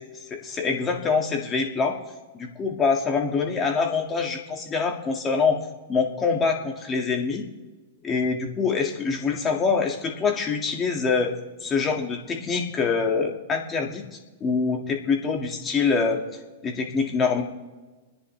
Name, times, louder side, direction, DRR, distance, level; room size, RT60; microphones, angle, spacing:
voice 1, 0.3-2.0 2.3-5.6 5.9-7.4 8.0-11.3 11.6-14.0 14.4-16.2 16.6-17.4, left 5 dB, 20° left, 1 dB, 2.1 m, -25 dB
29.5 x 10.0 x 3.4 m, 1.2 s
hypercardioid pair, 135°, 0 cm